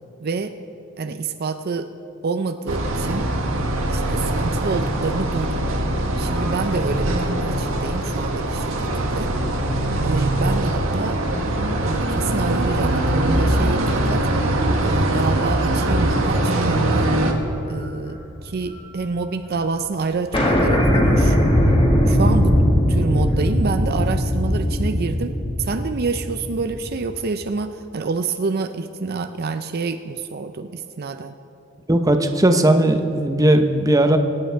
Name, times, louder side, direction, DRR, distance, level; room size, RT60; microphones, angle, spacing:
voice 1, 0.2-0.6 1.0-1.9 2.2-3.3 3.9-5.6 6.2-9.3 10.0-11.2 11.8-14.3 14.8-17.1 17.7-21.4 22.0-22.6 22.9-31.3, right 4 dB, 50° right, 9 dB, 0.5 m, -27 dB
sound 1, 2.7-17.3, right 1 dB, 85° right, 1.6 m, -22 dB
sound 2, 12.1-14.7 15.2-15.3 16.8-17.1 17.4-18.8 19.1-19.2 19.4-19.5 19.8-19.9 20.3-27.0, equal, 25° left, 2.0 m, -20 dB
voice 2, 31.9-34.2, right 1 dB, 15° right, 6 dB, 0.8 m, -17 dB
24.0 x 8.9 x 4.6 m, 2.7 s
head